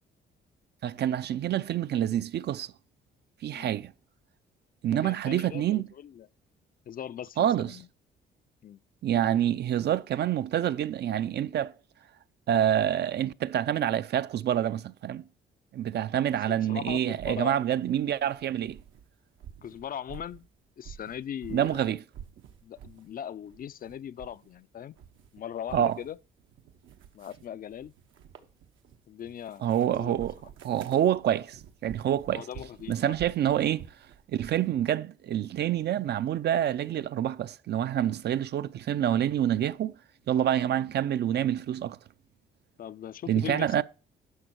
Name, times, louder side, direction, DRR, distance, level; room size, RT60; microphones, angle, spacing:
voice 1, 0.8-2.7 3.4-3.9 4.8-5.9 7.4-7.8 9.0-11.7 12.5-15.2 15.7-18.8 21.5-22.0 25.7-26.0 29.6-30.4 30.6-32.4 32.9-33.8 34.3-39.9 40.3-42.0 43.3-43.8, right 10 dB, 55° right, 0.5 m, -27 dB
voice 2, 4.9-6.3 6.9-7.9 8.6-8.8 16.5-17.6 19.6-20.5 20.8-21.9 22.6-25.0 25.3-26.2 27.1-27.9 29.1-30.2 32.3-33.2 40.7-40.9 42.8-43.8, left 9 dB, 45° left, 0.4 m, -40 dB
sound 1, 16.9-19.1 19.3-21.8 22.1-23.1 23.4-24.6 24.9-34.7, right 8 dB, 85° right, 1.2 m, -49 dB
11.0 x 6.1 x 4.5 m
cardioid pair, 90°, 20 cm